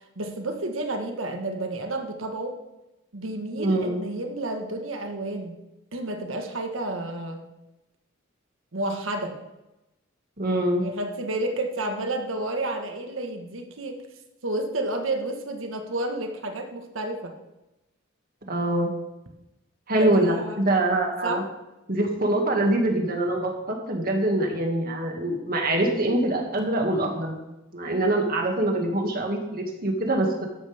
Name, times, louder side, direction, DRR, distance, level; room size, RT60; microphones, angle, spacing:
voice 1, 0.2-2.6 3.1-5.6 5.9-7.5 8.7-9.4 10.8-14.0 14.4-17.3 19.9-20.6 21.2-21.4, right 2 dB, 80° right, 4 dB, 1.5 m, -30 dB
voice 2, 3.6-4.0 10.4-10.8 18.5-18.9 19.9-21.4 21.9-27.4 27.7-30.5, right 1 dB, 45° right, 2 dB, 2.1 m, -24 dB
13.5 x 11.5 x 3.6 m, 0.96 s
head